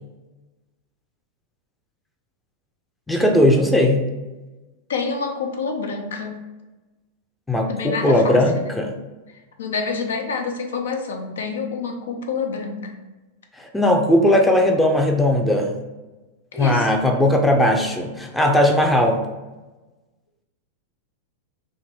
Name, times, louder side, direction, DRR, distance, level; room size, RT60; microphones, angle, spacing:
voice 1, 3.1-4.1 7.5-9.0 13.6-15.8 16.5-19.2, left 1 dB, 5° left, 2 dB, 0.5 m, -18 dB
voice 2, 4.9-6.4 7.7-8.8 9.6-13.0 16.5-16.9, left 4 dB, 70° left, 4 dB, 0.4 m, -27 dB
2.6 x 2.5 x 3.4 m, 1.2 s
figure-of-eight pair, 95°, 0 cm